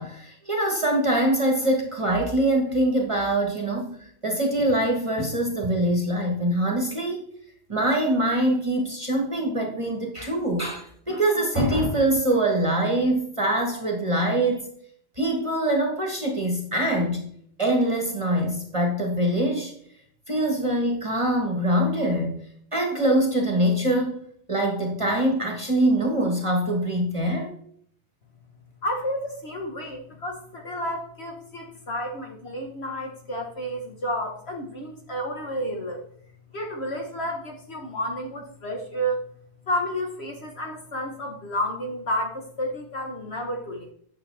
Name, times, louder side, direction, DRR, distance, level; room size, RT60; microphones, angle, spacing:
voice 1, 0.0-4.0 4.2-7.2 7.7-14.6 15.2-17.3 17.6-19.7 20.3-22.4 22.7-24.2 24.5-27.5, right 1 dB, 20° right, 1 dB, 1.3 m, -24 dB
voice 2, 28.8-36.0 36.5-39.2 39.7-43.9, equal, 45° left, 2 dB, 1.2 m, -31 dB
9.3 x 6.7 x 3.3 m, 0.64 s
omnidirectional pair, 1.6 m